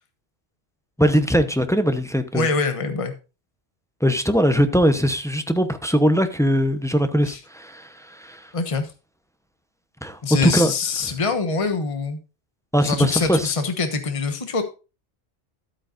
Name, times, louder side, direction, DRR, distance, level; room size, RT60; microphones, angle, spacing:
voice 1, 1.0-2.5 4.0-8.5 10.0-10.7 12.7-13.5, equal, 5° left, 0.7 m, -20 dB
voice 2, 2.3-3.1 7.2-7.4 8.5-8.9 10.2-12.2 12.8-14.6, left 4 dB, 30° left, 1.2 m, -24 dB
12.0 x 8.7 x 2.5 m
omnidirectional pair, 1.1 m